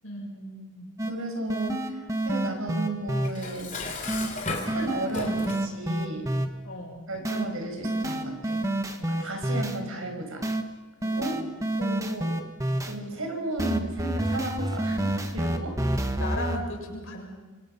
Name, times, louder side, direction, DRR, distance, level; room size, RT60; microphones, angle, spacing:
voice 1, 0.0-0.9 6.6-7.1 11.1-11.5 16.1-17.2, left 1 dB, 70° left, 0 dB, 7.4 m, -37 dB
sound 1, 1.0-1.1 1.5-3.3 4.1-4.3 4.7-6.5 7.2-7.4 7.8-9.8 10.4-10.6 11.0-12.9 13.6-16.6, right 1 dB, 15° right, 1.3 m, -28 dB
voice 2, 1.1-3.7 4.7-6.3 7.1-8.6 9.0-10.4 11.0-11.4 11.8-12.4 12.8-15.8, right 2 dB, 80° right, 3 dB, 5.9 m, -34 dB
Dishes pots and pans, 3.2-5.7, left 3 dB, 35° left, 3.3 m, -35 dB
26.5 x 25.5 x 5.7 m, 1.3 s
head